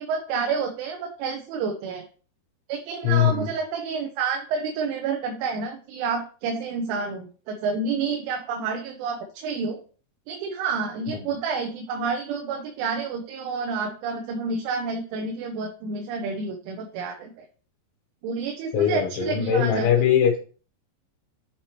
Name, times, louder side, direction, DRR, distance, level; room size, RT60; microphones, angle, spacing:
voice 1, 0.0-2.0 2.7-9.8 10.3-17.5 18.2-19.9, right 5 dB, 85° right, 3 dB, 3.2 m, -29 dB
voice 2, 3.0-3.4 18.7-20.4, left 9 dB, 80° left, 2 dB, 3.2 m, -21 dB
8.0 x 4.3 x 2.9 m, 0.39 s
omnidirectional pair, 5.4 m